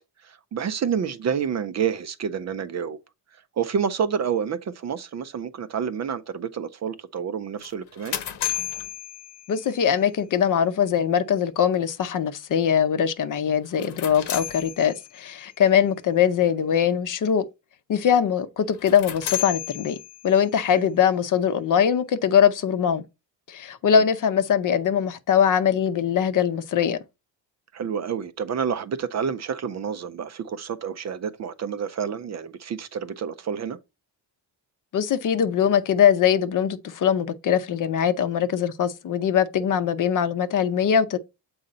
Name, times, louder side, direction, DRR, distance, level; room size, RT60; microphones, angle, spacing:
voice 1, 0.2-3.0 3.6-8.2 20.7-20.9 23.9-24.0 27.7-33.8, right 7 dB, 40° right, 0.5 m, -29 dB
sound 1, 7.6-9.9 13.6-15.3 18.7-20.5, left 12 dB, 85° left, 1.1 m, -33 dB
voice 2, 9.5-17.4 17.9-20.0 20.2-23.0 23.5-27.0 34.9-41.2, left 8 dB, 50° left, 0.7 m, -22 dB
7.7 x 4.1 x 3.9 m
cardioid pair, 165°, 41 cm